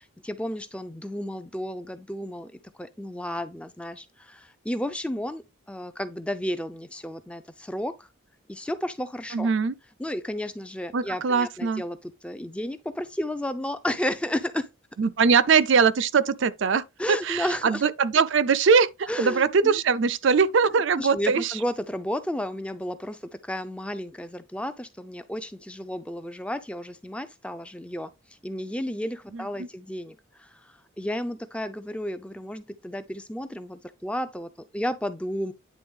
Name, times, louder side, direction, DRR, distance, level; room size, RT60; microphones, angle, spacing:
voice 1, 0.2-2.5 2.8-5.4 5.7-8.1 8.5-9.5 10.0-14.7 17.0-17.8 19.1-19.8 21.0-35.5, left 1 dB, 5° left, 0.4 m, -32 dB
voice 2, 9.3-9.7 10.9-11.8 15.0-16.8 17.2-21.5 29.3-29.7, right 5 dB, 60° right, 0.4 m, -22 dB
9.4 x 3.5 x 3.6 m
head